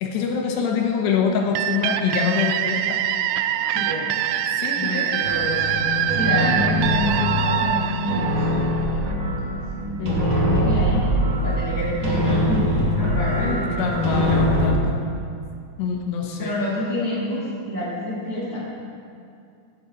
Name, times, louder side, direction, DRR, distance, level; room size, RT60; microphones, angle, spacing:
voice 1, 0.0-3.0 4.6-5.2 10.0-10.2 13.8-14.9 15.8-16.6, left 6 dB, 85° left, 1 dB, 3.2 m, -25 dB
sound 1, 1.5-9.1, right 10 dB, 90° right, 2.7 m, -24 dB
voice 2, 3.7-4.3 4.8-11.0 11.4-13.7 16.4-18.6, left 1 dB, 5° right, -8 dB, 2.3 m, -28 dB
sound 2, 5.2-14.7, left 1 dB, 60° right, 3.0 m, -23 dB
17.0 x 8.4 x 4.4 m, 2.4 s
omnidirectional pair, 4.8 m